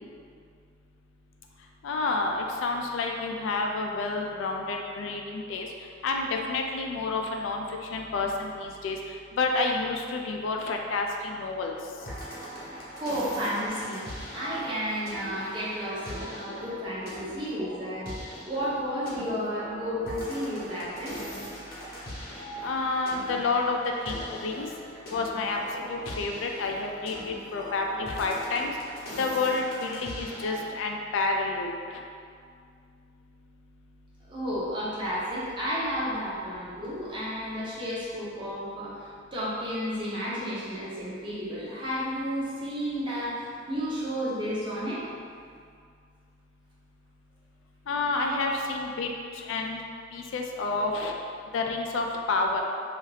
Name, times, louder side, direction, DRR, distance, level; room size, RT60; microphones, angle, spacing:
voice 1, 1.8-5.7 6.0-9.0 9.4-11.7 22.6-23.8 24.1-24.7 25.1-25.6 25.9-28.7 29.2-31.8 47.9-49.1 49.5-49.8 50.1-51.1 51.5-52.6, left 3 dB, 75° left, 2 dB, 0.3 m, -29 dB
sound 1, 12.0-30.6, equal, 50° left, 0.7 m, -40 dB
voice 2, 13.0-14.0 14.3-18.1 18.5-21.2 34.3-45.0 48.3-48.6, equal, 25° right, -8 dB, 0.6 m, -32 dB
2.7 x 2.4 x 3.2 m, 2.2 s
head